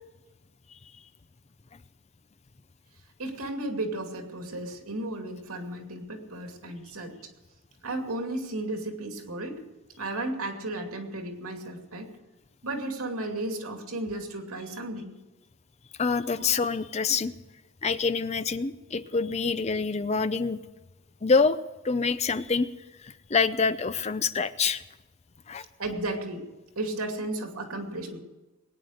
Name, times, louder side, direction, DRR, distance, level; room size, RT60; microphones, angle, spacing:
voice 1, 3.2-7.1 7.8-9.6 10.0-12.1 12.6-15.1 25.8-26.4 26.8-28.2, right 2 dB, 80° right, 4 dB, 2.6 m, -34 dB
voice 2, 16.0-17.3 17.8-20.6 21.2-21.6 21.8-22.7 23.0-24.8 25.5-25.6, left 4 dB, 30° left, 13 dB, 0.5 m, -26 dB
21.0 x 9.5 x 6.5 m, 1.1 s
head